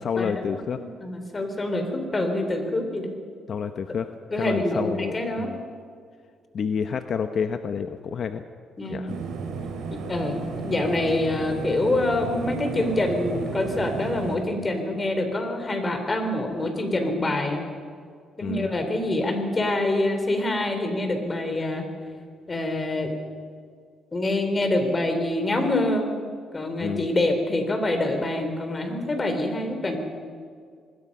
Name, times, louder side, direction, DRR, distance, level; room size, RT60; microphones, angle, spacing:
voice 1, 0.0-0.8 3.5-4.1 4.4-5.6 6.5-8.4 8.9-9.1 18.4-18.7 26.8-27.1, left 6 dB, 55° left, 8 dB, 0.9 m, -29 dB
voice 2, 0.7-3.1 4.3-5.5 8.8-9.1 9.9-17.6 18.4-21.9 22.5-23.1 24.1-26.1 26.5-30.0, left 1 dB, 30° left, 5 dB, 4.1 m, -26 dB
sound 1, 9.1-14.4, right 5 dB, 85° right, 3.3 m, -33 dB
25.0 x 20.5 x 5.6 m, 2.1 s
cardioid pair, 90°, 0 cm